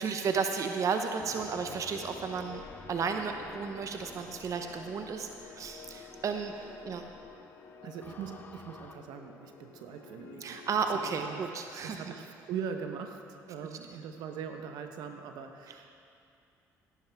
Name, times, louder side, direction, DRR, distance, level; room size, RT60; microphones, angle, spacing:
voice 1, 0.0-2.6 2.9-6.5 6.9-7.0 10.4-12.0, right 5 dB, 50° right, 5 dB, 0.8 m, -33 dB
sound 1, 0.9-11.2, left 6 dB, 85° left, 1.1 m, -52 dB
sound 2, 1.2-8.9, left 3 dB, 25° left, 0.9 m, -52 dB
voice 2, 7.8-10.7 11.2-11.5 11.8-15.9, right 7 dB, 75° right, 6 dB, 0.9 m, -41 dB
16.0 x 10.5 x 3.5 m, 2.5 s
supercardioid pair, 70°, 7 cm